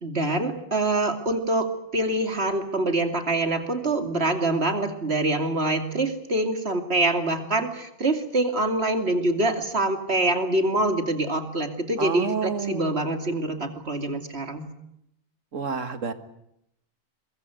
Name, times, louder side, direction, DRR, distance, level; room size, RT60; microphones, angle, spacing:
voice 1, 0.0-14.7, right 2 dB, 55° right, 6 dB, 3.0 m, -25 dB
voice 2, 12.0-13.0 15.5-16.1, right 5 dB, 75° right, 9 dB, 2.1 m, -29 dB
23.5 x 21.5 x 9.3 m, 0.78 s
omnidirectional pair, 1.3 m